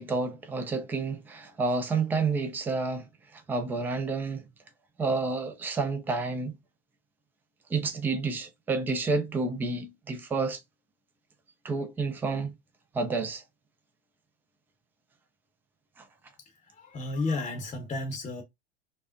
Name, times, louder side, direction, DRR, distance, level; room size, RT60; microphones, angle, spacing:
voice 1, 0.0-3.1 3.3-4.5 5.0-6.6 7.7-10.6 11.6-12.5 12.9-13.4 16.0-16.1, right 3 dB, 5° right, 0.3 m, -30 dB
voice 2, 16.4-18.4, left 2 dB, 15° left, 0.7 m, -33 dB
5.1 x 2.1 x 2.4 m
figure-of-eight pair, 85°, 35 cm